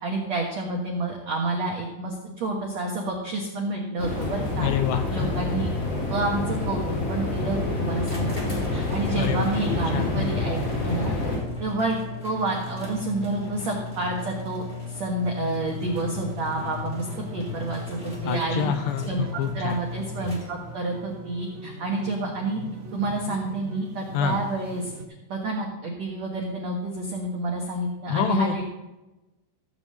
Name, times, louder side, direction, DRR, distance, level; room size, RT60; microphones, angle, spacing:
voice 1, 0.0-4.7 5.1-5.7 6.1-6.8 7.1-11.1 11.6-12.0 12.2-14.6 14.9-17.1 17.3-18.7 19.0-22.6 22.9-24.9 25.3-28.6, right 2 dB, 80° right, -1 dB, 1.5 m, -29 dB
sound 1, 4.0-11.4, left 2 dB, 55° left, 5.8 m, -28 dB
voice 2, 4.6-5.5 9.2-9.6 9.9-10.4 18.2-19.8 24.1-24.4 28.1-28.6, left 8 dB, 85° left, 8 dB, 2.5 m, -27 dB
sound 2, 8.0-20.8, left 3 dB, 20° left, 1.2 m, -36 dB
sound 3, 15.6-25.0, left 1 dB, 55° right, 2.2 m, -40 dB
15.5 x 5.5 x 7.7 m, 1.0 s
omnidirectional pair, 5.4 m